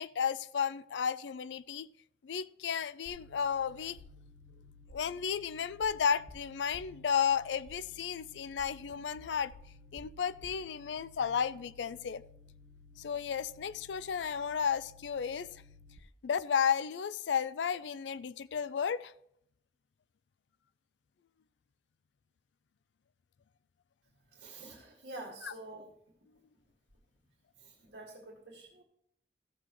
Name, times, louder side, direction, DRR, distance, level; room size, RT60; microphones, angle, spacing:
voice 1, 0.0-1.9 2.2-4.0 4.9-9.5 9.9-12.2 13.0-15.5 16.2-19.1 25.4-25.5, left 7 dB, 85° left, 0.4 m, -33 dB
sound 1, 3.1-16.0, left 2 dB, 45° left, 1.3 m, -56 dB
voice 2, 24.3-25.9 27.6-28.8, right 2 dB, 70° right, 1.9 m, -48 dB
14.5 x 7.5 x 3.0 m
head